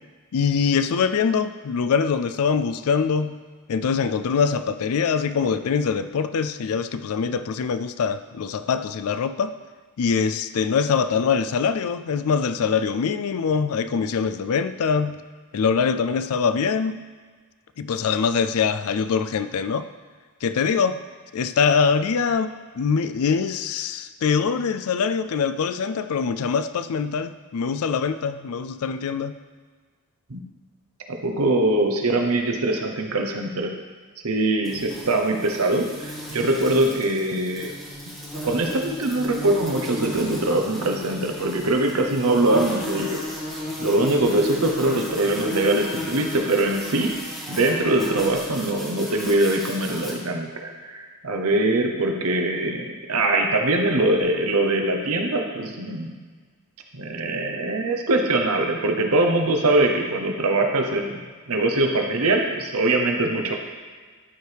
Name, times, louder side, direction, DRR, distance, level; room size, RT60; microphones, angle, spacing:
voice 1, 0.3-3.3 3.7-9.5 10.0-15.2 15.5-17.0 17.8-19.9 20.4-21.0 21.3-29.3, left 6 dB, 70° left, 12 dB, 0.4 m, -23 dB
voice 2, 31.1-33.7 34.2-37.7 38.4-43.2 43.8-47.1 47.5-56.2 56.9-61.2 61.5-63.6, right 2 dB, 70° right, 3 dB, 1.0 m, -22 dB
sound 1, 34.6-50.1, equal, ahead, 1.9 m, -34 dB
12.5 x 4.6 x 3.4 m, 1.5 s
head